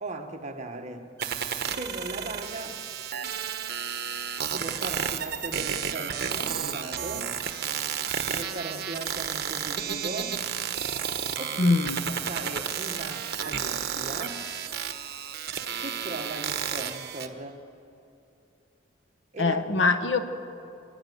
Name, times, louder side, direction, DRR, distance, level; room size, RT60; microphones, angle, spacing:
voice 1, 0.0-1.1 1.7-2.8 4.5-7.4 8.2-10.4 11.4-11.8 12.3-14.5 15.8-17.6 19.3-19.6 20.1-20.2, right 2 dB, 40° right, 4 dB, 1.4 m, -38 dB
sound 1, 1.2-17.3, right 8 dB, 55° right, 1.2 m, -32 dB
voice 2, 11.6-12.0 19.4-20.2, left 3 dB, 70° left, 7 dB, 1.3 m, -23 dB
28.5 x 11.0 x 9.4 m, 2.7 s
head